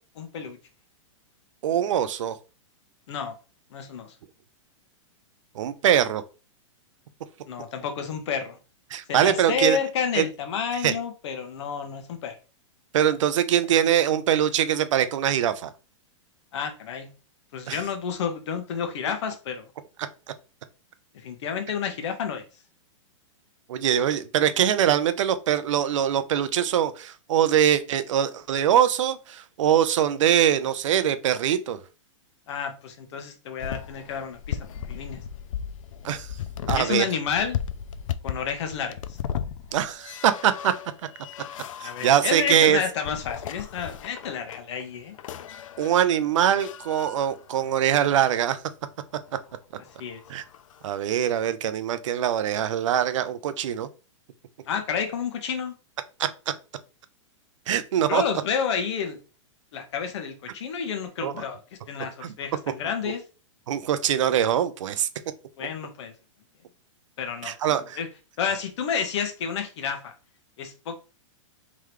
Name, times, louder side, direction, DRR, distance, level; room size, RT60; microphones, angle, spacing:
voice 1, 0.1-0.6 3.1-3.3 3.7-4.1 7.5-8.6 9.1-12.3 16.5-17.1 17.5-19.7 21.1-22.4 32.5-34.6 34.8-35.2 36.7-37.6 38.2-39.2 41.8-45.2 50.0-50.2 54.6-55.7 58.1-59.2 59.7-61.6 61.9-63.2 65.6-66.1 67.2-68.1 68.4-70.1 70.6-71.0, left 6 dB, 60° left, 1.0 m, -30 dB
voice 2, 1.6-2.3 5.6-6.2 8.9-9.8 10.2-10.3 10.8-10.9 12.9-15.7 17.7-17.8 23.7-31.8 36.0-36.3 36.7-37.1 39.7-40.7 41.8-42.8 45.8-48.6 50.3-50.4 50.8-53.9 56.2-56.3 57.7-58.2 61.2-61.3 62.2-62.3 63.7-65.1 67.4-68.0, right 10 dB, 70° right, 0.5 m, -23 dB
sound 1, 33.6-37.0 37.3-48.1 49.2-49.5 49.9-50.9, left 9 dB, 85° left, 0.4 m, -36 dB
3.7 x 3.1 x 3.2 m
hypercardioid pair, 150°, 16 cm